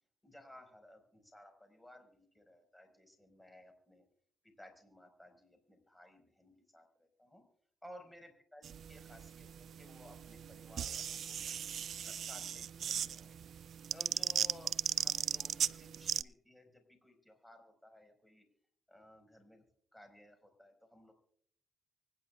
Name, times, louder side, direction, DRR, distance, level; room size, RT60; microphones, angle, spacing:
voice 1, 0.2-4.0 4.4-7.4 7.8-11.5 11.9-13.4 13.9-18.4 18.9-19.6 19.9-21.1, left 1 dB, 5° left, 4 dB, 5.1 m, -58 dB
sound 1, 8.6-16.2, right 8 dB, 60° right, 0.4 m, -37 dB
24.5 x 10.5 x 2.4 m, 0.63 s
cardioid pair, 90°, 0 cm